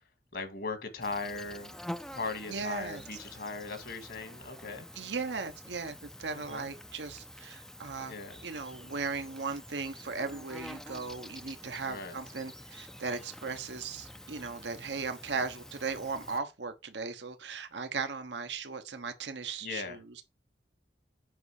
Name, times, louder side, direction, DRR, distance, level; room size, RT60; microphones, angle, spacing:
voice 1, 0.3-1.7 2.1-4.9 6.3-6.7 8.1-8.4 11.9-12.2 19.6-20.0, left 3 dB, 60° left, 2.1 m, -38 dB
Insect, 1.0-16.4, left 1 dB, 5° left, 0.5 m, -47 dB
voice 2, 2.5-3.0 4.9-8.1 8.4-20.2, right 4 dB, 80° right, 1.1 m, -37 dB
7.9 x 5.3 x 4.9 m
head